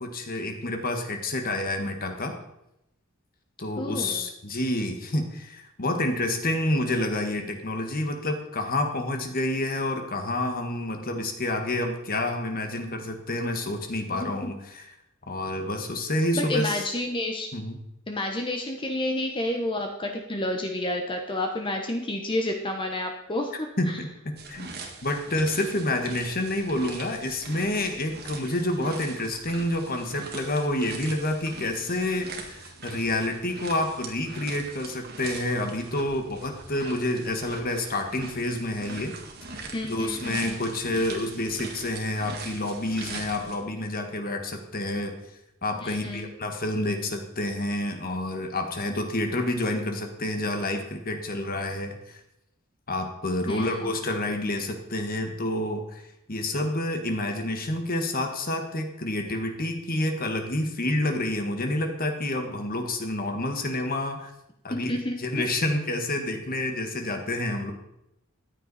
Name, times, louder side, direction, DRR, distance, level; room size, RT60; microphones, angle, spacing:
voice 1, 0.0-2.4 3.6-14.8 15.3-16.8 17.5-17.8 23.5-24.7 25.0-39.2 39.5-45.1 45.6-52.2 52.9-56.0 56.3-64.3 64.6-67.7, left 1 dB, 45° left, 5 dB, 1.6 m, -28 dB
voice 2, 3.8-4.3 14.2-14.5 16.3-17.5 18.1-24.0 39.7-40.6 45.8-46.3 53.5-53.8 64.8-65.5, left 1 dB, 25° left, 3 dB, 1.1 m, -30 dB
sound 1, 24.4-43.6, right 4 dB, 50° right, 1.9 m, -42 dB
14.0 x 10.0 x 4.2 m, 0.83 s
head